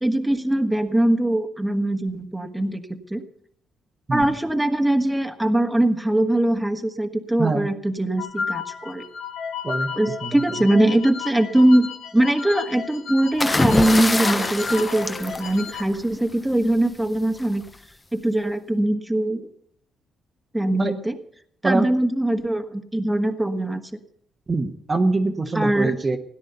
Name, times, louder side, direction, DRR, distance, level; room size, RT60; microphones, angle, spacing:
voice 1, 0.0-2.8 3.1-3.2 4.1-9.0 10.0-11.9 12.1-17.6 18.1-19.5 20.5-21.1 21.6-23.8 25.5-25.9, right 1 dB, 5° right, 6 dB, 1.5 m, -21 dB
voice 2, 7.4-7.7 9.6-9.9 10.2-10.4 20.8-20.9 21.6-21.9 24.5-26.2, right 3 dB, 30° right, 4 dB, 1.3 m, -23 dB
sound 1, 8.2-15.8, left 6 dB, 70° left, 2.4 m, -33 dB
sound 2, 13.4-16.2 17.4-17.7, left 2 dB, 20° left, 0.9 m, -24 dB
17.5 x 10.5 x 6.9 m, 0.65 s
cardioid pair, 90°, 0 cm